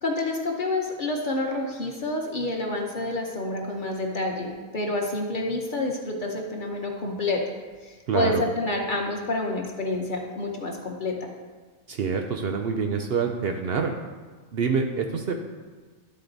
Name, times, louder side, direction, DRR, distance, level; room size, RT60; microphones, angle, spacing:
voice 1, 0.0-7.5 7.8-11.3, left 2 dB, 45° left, 0 dB, 0.8 m, -28 dB
voice 2, 8.1-8.4 11.9-13.9 14.5-15.3, right 5 dB, 65° right, 4 dB, 0.6 m, -26 dB
11.5 x 3.9 x 3.9 m, 1.4 s
omnidirectional pair, 1.5 m